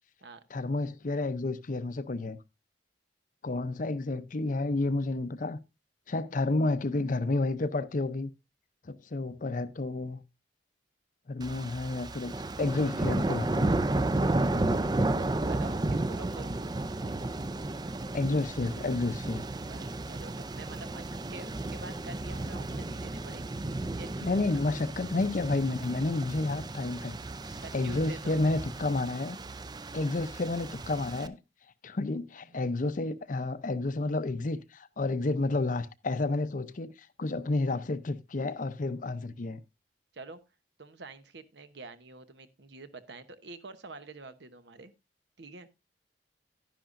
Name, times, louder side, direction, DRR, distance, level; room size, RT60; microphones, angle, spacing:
voice 1, 0.5-2.4 3.4-5.6 6.1-8.3 8.8-10.2 11.3-13.8 18.1-19.4 24.2-27.2 27.5-29.4 29.9-31.4 31.8-39.6, left 2 dB, 45° left, 0.6 m, -30 dB
sound 1, 11.4-31.3, right 2 dB, 25° right, 0.5 m, -33 dB
voice 2, 15.4-16.5 19.7-23.5 23.9-24.6 27.6-28.4 40.1-40.4 40.8-44.9 45.4-45.7, right 3 dB, 70° right, 1.0 m, -47 dB
11.0 x 10.5 x 2.5 m
head